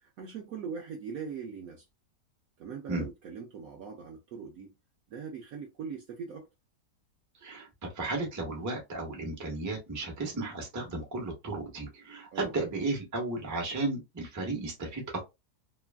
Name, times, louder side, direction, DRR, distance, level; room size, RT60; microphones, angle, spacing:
voice 1, 0.0-1.8 2.6-4.7 5.1-6.5 12.3-12.5, right 6 dB, 70° right, 0.9 m, -41 dB
voice 2, 7.4-15.0, right 2 dB, 25° right, 0.4 m, -34 dB
3.0 x 2.4 x 2.2 m
omnidirectional pair, 1.9 m